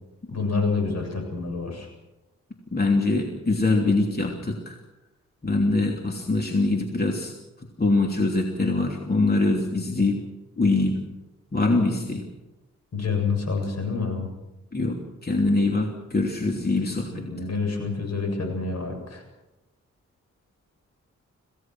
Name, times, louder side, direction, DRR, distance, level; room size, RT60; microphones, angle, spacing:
voice 1, 0.3-1.9 12.9-14.3 17.1-19.2, left 4 dB, 65° left, 4 dB, 7.6 m, -27 dB
voice 2, 2.7-4.8 5.4-7.3 7.6-10.2 10.6-11.0 11.5-12.2 14.7-17.2, left 2 dB, 35° left, 1 dB, 3.1 m, -23 dB
26.5 x 17.0 x 6.1 m, 1.0 s
cardioid pair, 75°, 29 cm